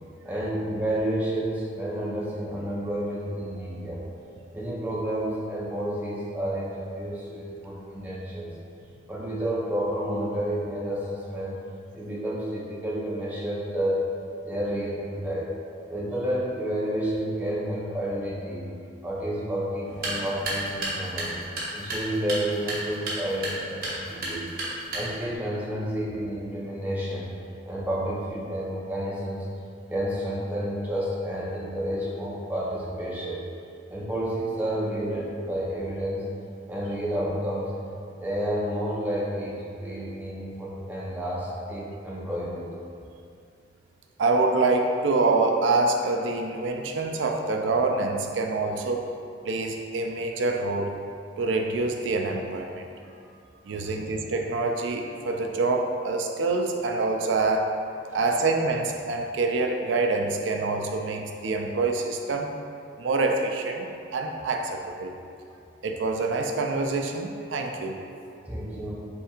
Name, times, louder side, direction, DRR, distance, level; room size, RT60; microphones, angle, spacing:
voice 1, 0.2-4.0 4.5-8.5 9.1-11.5 11.9-14.0 14.4-15.5 15.9-18.7 19.0-21.3 21.7-24.4 24.9-27.3 27.6-29.5 29.9-33.4 33.9-36.2 36.6-37.7 38.1-42.7 53.7-54.0 68.5-69.0, right 1 dB, 10° right, -7 dB, 0.7 m, -30 dB
sound 1, 19.8-25.4, right 1 dB, 50° right, 1.0 m, -33 dB
voice 2, 44.2-49.1 49.4-51.0 51.4-52.8 53.7-57.7 58.1-62.6 63.0-65.1 65.8-68.0, right 3 dB, 85° right, 3 dB, 0.4 m, -26 dB
5.7 x 3.4 x 2.4 m, 2.6 s
head